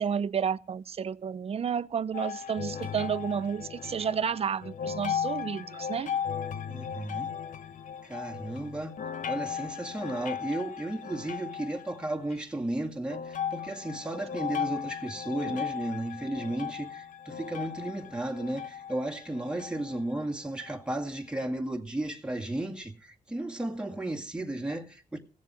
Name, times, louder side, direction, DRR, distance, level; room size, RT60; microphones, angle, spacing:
voice 1, 0.0-6.1 15.5-15.6, right 7 dB, 45° right, 0.6 m, -31 dB
sound 1, 2.1-12.4 13.1-20.0 20.6-20.7 21.4-21.5, left 8 dB, 65° left, 0.9 m, -37 dB
voice 2, 6.7-7.3 8.0-9.0 9.3-25.2, right 1 dB, 5° right, 2.0 m, -34 dB
17.0 x 7.5 x 6.1 m
cardioid pair, 115°, 14 cm